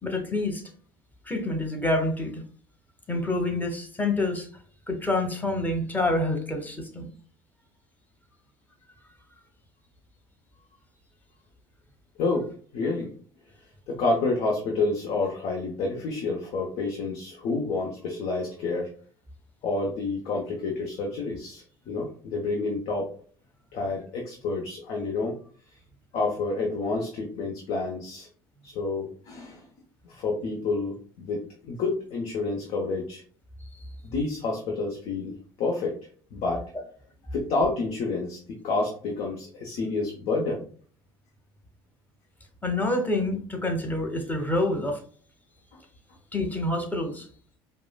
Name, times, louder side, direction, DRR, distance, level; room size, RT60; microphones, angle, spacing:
voice 1, 0.0-0.6 1.3-2.4 3.1-4.5 4.9-7.1 42.6-45.0 46.3-47.3, left 2 dB, 15° left, 3 dB, 1.1 m, -27 dB
voice 2, 12.2-12.5 12.7-13.1 13.9-18.9 19.6-23.1 23.7-25.3 26.1-28.3 28.6-29.6 30.1-33.2 34.0-36.0 36.3-36.6 37.3-40.6, left 3 dB, 60° left, 0 dB, 0.8 m, -29 dB
4.9 x 2.1 x 2.3 m, 0.44 s
hypercardioid pair, 75°, 12 cm